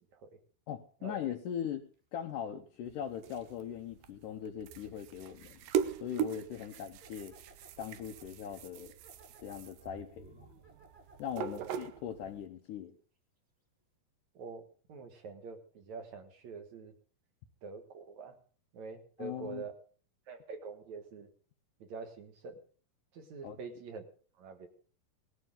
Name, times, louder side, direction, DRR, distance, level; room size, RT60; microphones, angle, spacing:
voice 1, 0.7-5.6 6.0-7.4 7.8-8.9 9.4-10.5 11.2-13.0 19.2-19.7 23.4-23.6, left 9 dB, 75° left, 3 dB, 1.9 m, -40 dB
sound 1, 1.9-2.2 5.3-5.4 5.9-11.6 12.2-12.3 12.6-12.7, equal, 15° right, 2.1 m, -61 dB
sound 2, 2.9-12.4, right 9 dB, 75° right, 2.2 m, -40 dB
voice 2, 11.4-11.7 14.3-14.6 14.9-16.9 17.6-18.3 18.7-19.7 20.3-21.3 21.8-22.6 23.1-24.0 24.4-24.7, right 5 dB, 55° right, 7 dB, 2.4 m, -45 dB
19.0 x 14.0 x 3.8 m, 0.41 s
omnidirectional pair, 4.7 m